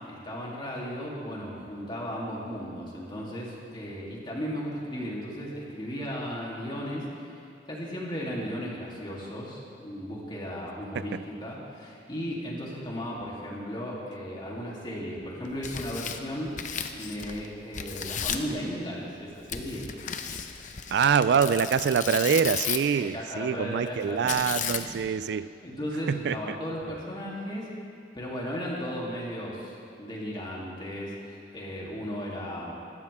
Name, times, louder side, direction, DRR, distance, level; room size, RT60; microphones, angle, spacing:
voice 1, 0.1-16.5 16.9-19.9 21.4-21.6 22.9-24.3 24.6-24.9 25.6-27.7 28.1-32.7, equal, 25° left, -5 dB, 3.1 m, -36 dB
Tearing, 15.4-17.5 17.7-18.5 19.5-23.0 24.3-25.1, left 8 dB, 45° left, 0.8 m, -34 dB
voice 2, 20.9-25.5 26.1-26.6, right 7 dB, 65° right, 15 dB, 0.3 m, -25 dB
24.5 x 13.0 x 3.6 m, 2.6 s
head